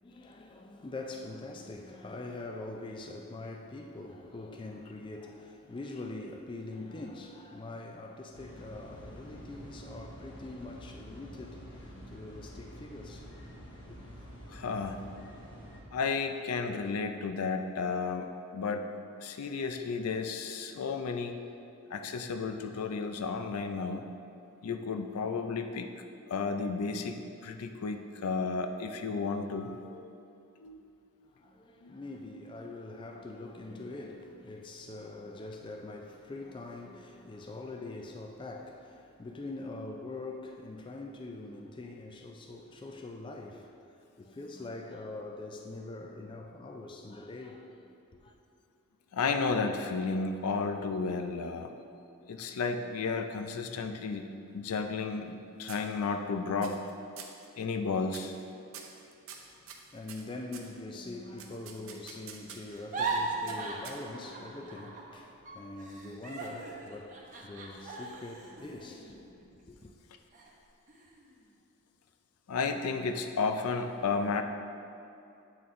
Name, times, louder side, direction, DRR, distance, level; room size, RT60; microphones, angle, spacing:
voice 1, 0.0-13.3 13.7-13.8 31.3-43.7 44.2-47.9 48.2-48.3 59.4-69.4 69.7-69.9, left 2 dB, 20° left, 0.3 m, -43 dB
sound 1, 8.3-15.8, equal, 55° left, 1.1 m, -48 dB
voice 2, 14.5-15.0 15.9-18.9 19.2-21.4 21.9-24.0 24.6-25.9 26.3-30.0 30.6-30.9 31.8-31.9 49.1-51.7 52.3-54.3 54.5-56.8 57.6-58.3 72.5-74.4, left 4 dB, 85° left, 0.4 m, -33 dB
sound 2, 54.5-55.4 55.7-56.3 56.6-56.9 57.2-57.5 58.1-58.4 58.7-60.7 61.4-62.8 63.5-64.3, right 7 dB, 65° right, 0.6 m, -48 dB
sound 3, 62.7-65.2 65.4-69.8 70.3-70.5 70.9-71.4, right 3 dB, 35° right, 0.8 m, -38 dB
8.2 x 4.3 x 3.7 m
head